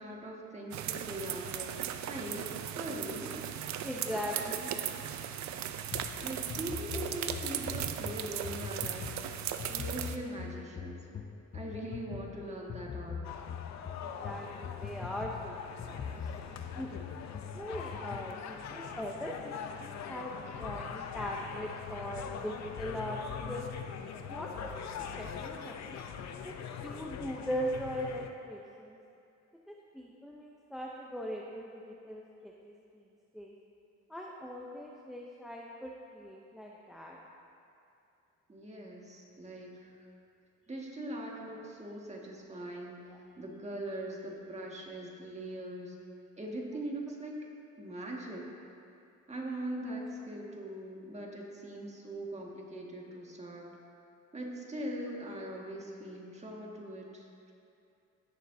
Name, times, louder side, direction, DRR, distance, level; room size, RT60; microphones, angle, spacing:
voice 1, 0.0-3.4 4.1-4.7 6.2-11.1 11.5-13.2 38.5-40.0 40.7-46.0 46.4-47.4 47.8-48.5 49.3-53.7 54.3-57.5, right 1 dB, 20° right, -2 dB, 1.8 m, -41 dB
sound 1, 0.7-10.2, right 10 dB, 65° right, 0.6 m, -37 dB
voice 2, 3.8-4.9 11.6-11.8 14.0-16.9 17.5-20.3 20.6-23.7 24.3-26.0 26.4-26.5 26.8-29.0 29.7-33.0 33.3-33.5 34.1-37.2 43.1-43.2, equal, ahead, -2 dB, 0.7 m, -40 dB
sound 2, 5.9-18.4, left 7 dB, 30° left, 0.4 m, -43 dB
sound 3, 13.2-28.3, left 7 dB, 65° left, 0.7 m, -42 dB
17.0 x 6.6 x 2.7 m, 2.6 s
cardioid pair, 90°, 30 cm